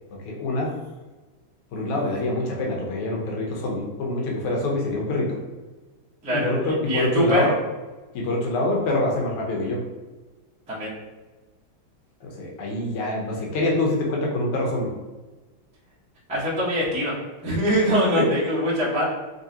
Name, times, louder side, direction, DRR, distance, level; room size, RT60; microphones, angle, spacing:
voice 1, 0.3-0.8 1.7-5.4 6.3-7.5 8.1-9.8 12.2-14.9 18.2-18.4, left 2 dB, 85° left, -1 dB, 1.8 m, -25 dB
voice 2, 6.2-7.6 10.7-10.9 16.3-17.1 17.4-19.1, equal, 10° right, -8 dB, 0.4 m, -23 dB
3.8 x 3.1 x 2.8 m, 1.2 s
omnidirectional pair, 2.4 m